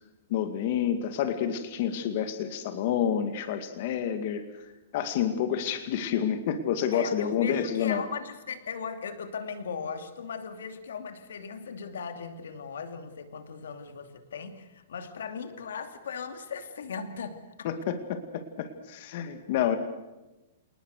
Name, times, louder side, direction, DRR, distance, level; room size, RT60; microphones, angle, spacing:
voice 1, 0.3-8.0 17.6-19.8, left 9 dB, 45° left, 8 dB, 2.2 m, -29 dB
voice 2, 6.9-17.7, left 6 dB, 90° left, 8 dB, 2.6 m, -38 dB
28.0 x 19.5 x 6.7 m, 1.0 s
hypercardioid pair, 160°, 0 cm